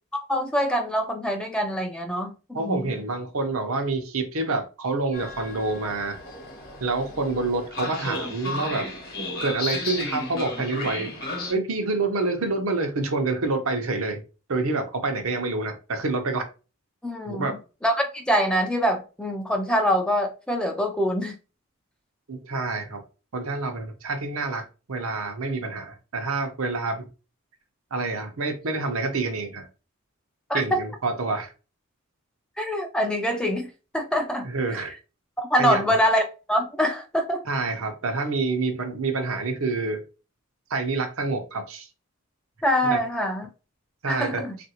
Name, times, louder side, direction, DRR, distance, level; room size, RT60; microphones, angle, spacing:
voice 1, 0.1-2.8 17.0-17.5 17.8-21.3 30.5-30.8 32.6-33.7 33.9-34.5 35.4-36.2 36.5-37.4 42.6-43.5 44.1-44.5, equal, 5° left, 0.3 m, -24 dB
voice 2, 2.5-6.2 6.8-8.9 9.4-11.1 11.5-14.2 14.5-16.5 17.3-17.5 22.3-23.0 23.3-27.1 27.9-29.7 30.5-31.5 34.4-34.9 35.6-35.9 37.5-40.0 40.7-41.9 42.9-43.0 44.0-44.4, right 3 dB, 75° right, 0.7 m, -27 dB
Train, 5.1-11.5, left 2 dB, 45° left, 0.9 m, -34 dB
3.2 x 2.5 x 2.8 m
head